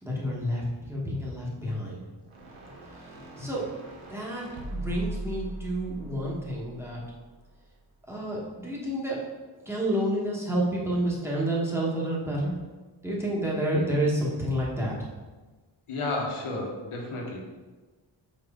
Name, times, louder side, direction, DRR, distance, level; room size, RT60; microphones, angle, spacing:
voice 1, 0.0-2.0 3.1-3.7 4.1-4.5 4.7-7.0 8.1-9.2 9.6-12.6 13.0-15.0, right 1 dB, 5° right, -5 dB, 1.2 m, -29 dB
sound 1, 2.2-7.5, right 2 dB, 85° right, 1.2 m, -40 dB
voice 2, 15.9-17.4, left 2 dB, 90° left, -1 dB, 1.4 m, -32 dB
5.3 x 5.2 x 3.6 m, 1.3 s
wide cardioid pair, 160°, 49 cm